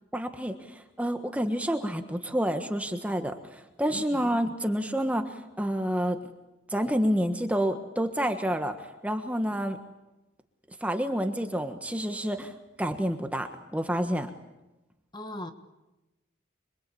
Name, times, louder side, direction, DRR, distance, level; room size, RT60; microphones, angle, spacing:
voice 1, 0.1-6.2 6.7-9.8 10.8-14.3, equal, 5° right, 6 dB, 1.4 m, -29 dB
voice 2, 3.9-4.2 15.1-15.5, left 1 dB, 20° left, 7 dB, 1.5 m, -39 dB
26.5 x 23.5 x 8.6 m, 1.0 s
head